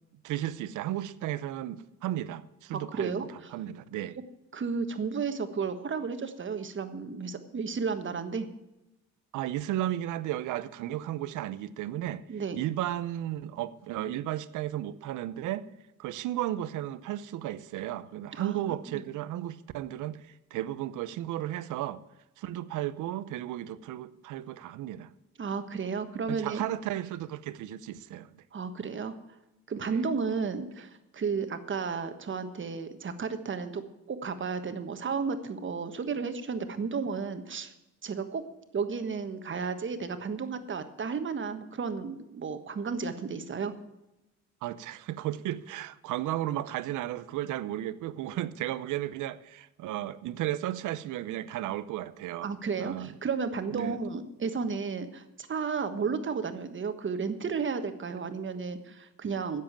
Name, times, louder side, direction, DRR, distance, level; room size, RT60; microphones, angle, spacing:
voice 1, 0.2-3.3 3.5-4.2 9.3-12.2 12.6-15.7 16.0-22.0 22.4-25.1 26.3-28.3 29.9-30.0 44.6-52.5 52.8-53.1 53.7-54.0, right 13 dB, 90° right, 15 dB, 0.7 m, -34 dB
voice 2, 2.7-3.3 4.5-8.5 12.3-12.6 18.3-18.6 18.9-19.0 25.4-26.6 28.5-29.1 29.7-33.8 34.1-37.7 38.0-38.4 38.7-43.7 52.4-59.6, right 5 dB, 40° right, 9 dB, 1.4 m, -33 dB
11.0 x 7.6 x 8.8 m, 0.96 s
cardioid pair, 90°, 30 cm